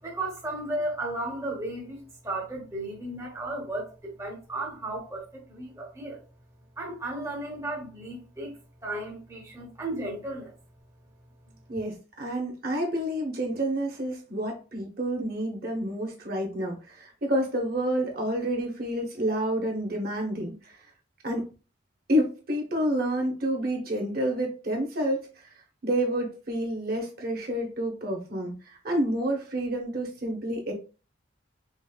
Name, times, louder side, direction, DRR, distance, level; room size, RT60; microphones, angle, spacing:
voice 1, 0.0-6.2 6.8-10.5 11.5-11.6, right 1 dB, 15° right, 0.8 m, -35 dB
voice 2, 11.7-20.8 21.2-21.5 22.1-25.4 25.8-30.7, right 1 dB, 50° right, 1.0 m, -29 dB
5.1 x 2.6 x 2.3 m
head